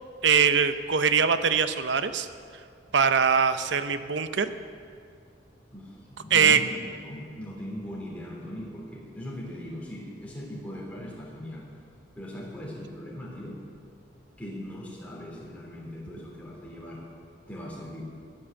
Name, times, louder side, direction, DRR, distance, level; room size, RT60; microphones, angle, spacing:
voice 1, 0.2-2.3 2.9-4.5 6.3-6.6, right 6 dB, 75° right, 11 dB, 0.7 m, -22 dB
voice 2, 5.7-6.8 7.0-11.7 12.1-13.7 14.4-17.1 17.5-18.0, equal, 5° left, -5 dB, 3.1 m, -39 dB
14.0 x 8.7 x 7.7 m, 2.3 s
head